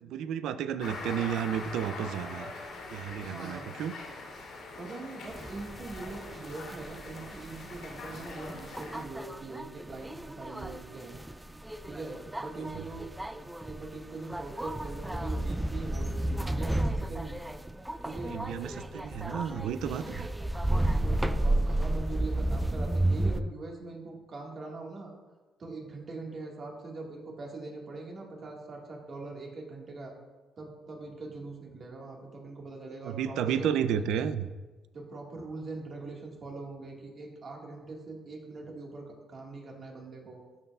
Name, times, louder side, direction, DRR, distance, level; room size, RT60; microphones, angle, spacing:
voice 1, 0.0-2.5 2.9-4.0 12.6-12.9 18.3-20.3 33.1-34.5, right 8 dB, 85° right, 13 dB, 0.4 m, -32 dB
sound 1, 0.8-9.0, left 3 dB, 80° left, 2.4 m, -43 dB
voice 2, 3.2-3.7 4.8-11.2 11.9-13.1 13.4-17.3 18.0-18.4 21.0-25.1 25.6-30.2 30.6-34.0 34.9-40.4, right 3 dB, 50° right, 0 dB, 1.7 m, -42 dB
sound 2, 5.3-23.4, right 1 dB, 5° right, 0.3 m, -33 dB
12.0 x 5.6 x 2.4 m, 1.2 s
cardioid pair, 90°, 0 cm